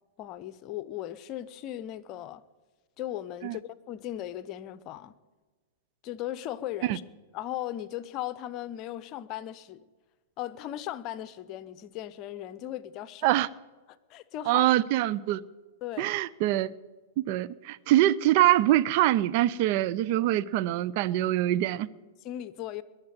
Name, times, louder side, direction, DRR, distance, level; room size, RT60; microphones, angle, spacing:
voice 1, 0.2-2.4 3.0-5.1 6.0-7.0 7.3-9.8 10.4-13.4 14.1-14.7 15.8-16.1 22.2-22.8, left 12 dB, 40° left, 0.9 m, -37 dB
voice 2, 14.5-15.4 16.0-16.7 17.3-21.9, right 14 dB, 50° right, 0.6 m, -24 dB
21.0 x 7.4 x 9.2 m
hypercardioid pair, 105°, 0 cm